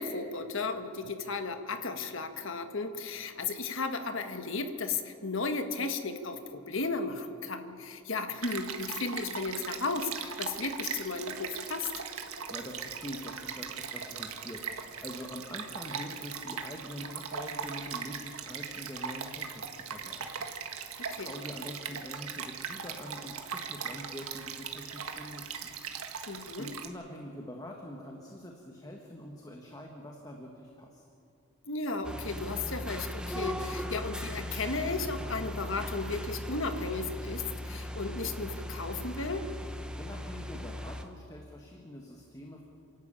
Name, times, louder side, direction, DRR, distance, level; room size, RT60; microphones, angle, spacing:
voice 1, 0.0-11.9 21.1-21.3 26.3-26.7 31.7-39.4, left 3 dB, 60° left, 7 dB, 1.5 m, -34 dB
Stream, 8.4-26.9, right 6 dB, 80° right, 1.7 m, -39 dB
voice 2, 12.2-20.4 20.6-25.7 26.1-31.0 40.0-42.6, equal, 15° left, 1 dB, 1.6 m, -45 dB
sound 1, 32.0-41.0, left 1 dB, 5° right, 1.0 m, -38 dB
28.0 x 12.0 x 8.8 m, 2.6 s
head